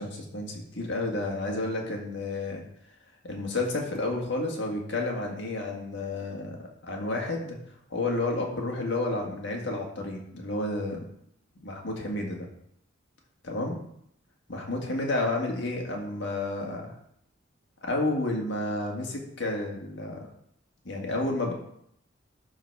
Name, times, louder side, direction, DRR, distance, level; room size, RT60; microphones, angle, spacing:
voice 1, 0.0-2.6 3.2-7.6 7.9-11.0 11.6-12.5 13.4-13.8 14.5-17.0 17.8-20.3 20.9-21.5, left 2 dB, 60° left, 0 dB, 1.9 m, -31 dB
12.0 x 4.0 x 4.7 m, 0.72 s
head